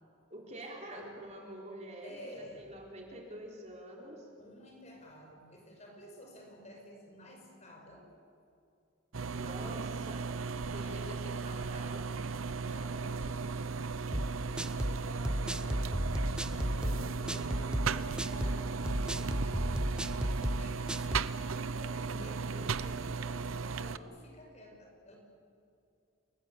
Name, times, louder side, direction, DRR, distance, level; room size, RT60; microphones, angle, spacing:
voice 1, 0.3-4.3 9.3-10.3 10.7-12.1, right 1 dB, 35° right, 0 dB, 3.9 m, -46 dB
voice 2, 2.0-2.7 4.4-8.1 10.7-11.1 12.5-13.8 14.2-16.1 16.5-21.0 21.7-25.2, equal, 35° left, 1 dB, 6.0 m, -52 dB
sound 1, 9.1-24.0, right 4 dB, 90° right, 0.7 m, -36 dB
sound 2, 14.1-21.3, equal, 5° right, 0.7 m, -34 dB
29.5 x 19.5 x 8.5 m, 2.5 s
head